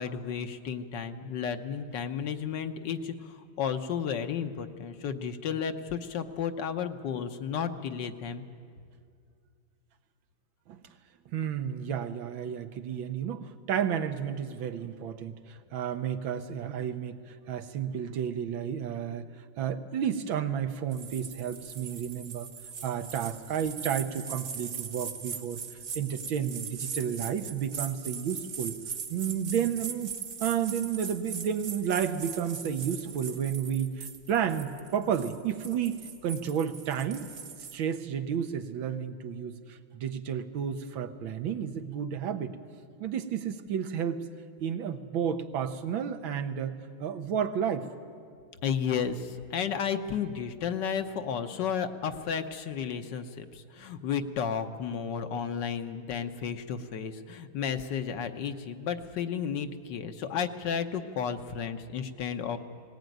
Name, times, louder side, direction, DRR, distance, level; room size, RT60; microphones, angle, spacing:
voice 1, 0.0-8.4 48.6-62.6, left 7 dB, 65° left, 8 dB, 1.5 m, -33 dB
voice 2, 11.3-22.5 22.8-25.6 26.0-28.8 29.1-30.1 30.4-37.3 37.7-42.6 43.0-44.2 44.6-47.9, right 8 dB, 85° right, 9 dB, 1.7 m, -32 dB
sound 1, 20.9-37.8, right 6 dB, 50° right, 1.4 m, -40 dB
19.5 x 18.5 x 9.2 m, 2.2 s
omnidirectional pair, 2.1 m